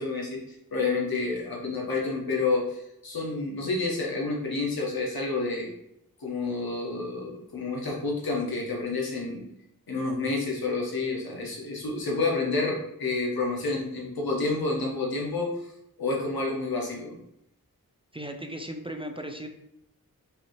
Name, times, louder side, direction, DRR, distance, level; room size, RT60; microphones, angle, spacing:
voice 1, 0.0-5.7 6.2-9.4 9.9-15.7 16.0-17.2, left 3 dB, 85° left, -2 dB, 1.1 m, -29 dB
voice 2, 18.1-19.5, right 1 dB, 15° right, 4 dB, 0.4 m, -36 dB
5.5 x 2.7 x 3.0 m, 0.79 s
wide cardioid pair, 55°, 35 cm